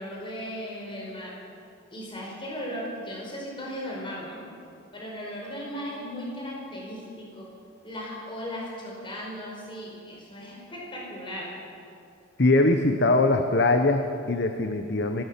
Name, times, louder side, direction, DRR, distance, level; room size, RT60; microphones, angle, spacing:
voice 1, 0.0-1.3 1.9-4.4 4.9-7.5 7.8-11.5, equal, 25° left, -3 dB, 4.8 m, -37 dB
voice 2, 12.4-15.2, left 2 dB, 60° left, 6 dB, 1.0 m, -22 dB
24.5 x 16.0 x 6.9 m, 2.6 s
head